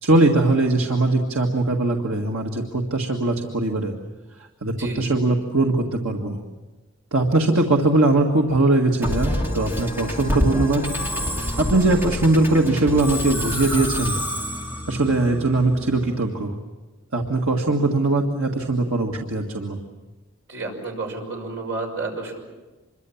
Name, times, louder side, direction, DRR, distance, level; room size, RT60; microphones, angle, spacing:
voice 1, 0.0-3.9 4.6-6.4 7.1-10.8 11.1-14.2 14.9-16.5 17.1-19.8, right 2 dB, 80° right, 1 dB, 1.8 m, -21 dB
Musical instrument, 9.0-16.3, equal, 10° right, 2.4 m, -27 dB
voice 2, 20.5-22.4, right 3 dB, 60° right, 1 dB, 6.0 m, -30 dB
26.5 x 23.0 x 7.2 m, 1.2 s
head